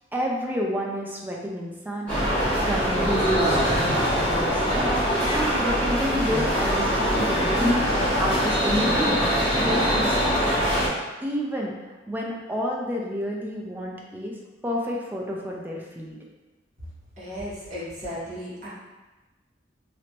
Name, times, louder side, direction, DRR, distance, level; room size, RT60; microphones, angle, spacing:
voice 1, 0.1-7.9 8.2-9.2 9.6-10.9 11.2-11.7 12.1-14.3 14.6-16.2, equal, 10° right, -2 dB, 0.4 m, -30 dB
sound 1, 2.1-10.9, equal, 10° left, 1.3 m, -23 dB
voice 2, 17.2-18.7, equal, 40° right, -10 dB, 1.4 m, -35 dB
3.2 x 2.9 x 2.9 m, 1.2 s
head